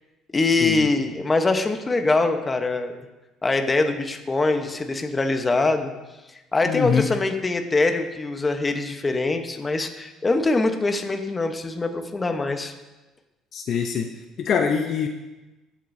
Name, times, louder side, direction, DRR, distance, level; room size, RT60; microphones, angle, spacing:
voice 1, 0.3-2.9 3.4-5.9 6.5-12.7, left 3 dB, 20° left, 6 dB, 1.0 m, -23 dB
voice 2, 6.6-7.1 13.5-14.1 14.4-15.1, left 6 dB, 50° left, 4 dB, 0.7 m, -23 dB
15.5 x 7.4 x 2.7 m, 1.1 s
cardioid pair, 105°, 0 cm